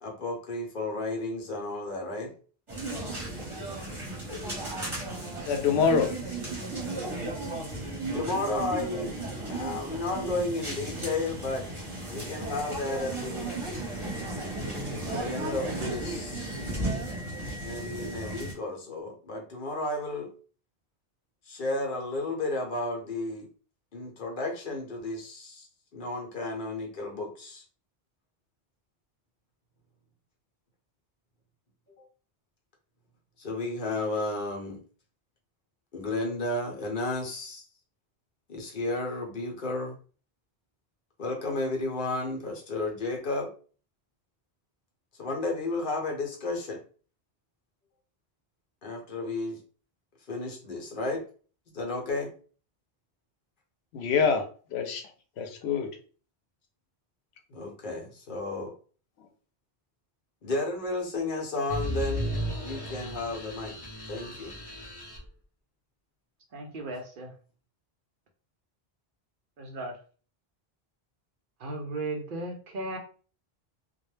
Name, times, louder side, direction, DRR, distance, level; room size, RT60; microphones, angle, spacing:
voice 1, 0.0-2.3 8.1-9.2 9.5-11.7 12.1-13.5 15.1-16.5 17.6-20.3 21.5-23.5 23.9-25.7 25.9-27.6 32.0-32.1 33.4-34.8 35.9-37.6 38.5-40.0 41.2-43.5 45.2-46.8 48.8-49.6 50.3-51.2 51.7-52.3 57.5-58.7 60.4-63.7 64.1-64.5, left 2 dB, 55° left, 0.9 m, -33 dB
sound 1, 2.7-18.5, right 2 dB, 30° right, 1.0 m, -35 dB
voice 2, 5.5-6.1 12.0-12.3 53.9-55.0 55.4-56.0, left 6 dB, 85° left, 0.8 m, -26 dB
sound 2, 61.7-65.3, equal, 25° left, 0.7 m, -35 dB
voice 3, 66.5-67.3 69.6-70.0 71.6-73.0, right 2 dB, 60° right, 0.7 m, -36 dB
2.3 x 2.1 x 3.1 m
omnidirectional pair, 1.1 m